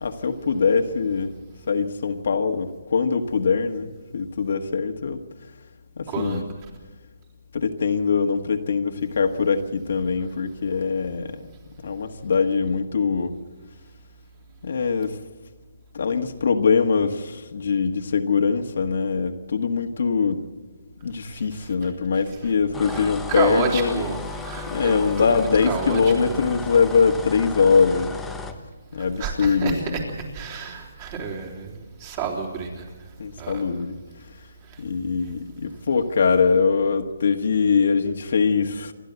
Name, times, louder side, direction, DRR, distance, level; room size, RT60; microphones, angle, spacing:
voice 1, 0.0-1.3 1.7-5.2 6.0-6.4 7.5-11.4 11.8-13.3 14.6-15.2 15.9-20.4 21.0-24.0 24.6-28.1 28.9-30.0 33.2-34.0 34.8-38.9, left 5 dB, 65° left, 5 dB, 1.6 m, -22 dB
voice 2, 6.1-6.4 21.2-22.5 22.9-26.5 29.0-32.8 33.4-33.6 34.7-34.8, right 5 dB, 30° right, 0 dB, 3.6 m, -31 dB
sound 1, 22.7-28.6, left 3 dB, 5° left, 1.0 m, -34 dB
28.0 x 12.0 x 8.1 m, 1.3 s
hypercardioid pair, 165°, 0 cm